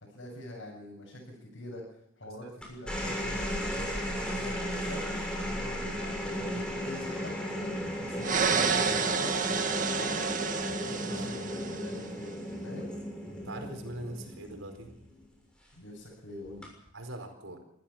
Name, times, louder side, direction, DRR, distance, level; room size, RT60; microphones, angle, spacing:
voice 1, 0.1-1.8 2.2-10.3 10.7-12.9 15.7-16.7, left 1 dB, 65° left, -4 dB, 7.7 m, -45 dB
sound 1, 2.6-15.2 16.4-16.9, equal, 5° left, 6.6 m, -35 dB
sound 2, 8.2-12.1, right 5 dB, 40° right, 1.8 m, -29 dB
voice 2, 13.4-14.9 16.9-17.6, right 1 dB, 85° right, 5 dB, 4.7 m, -41 dB
25.5 x 14.5 x 7.3 m, 0.79 s
head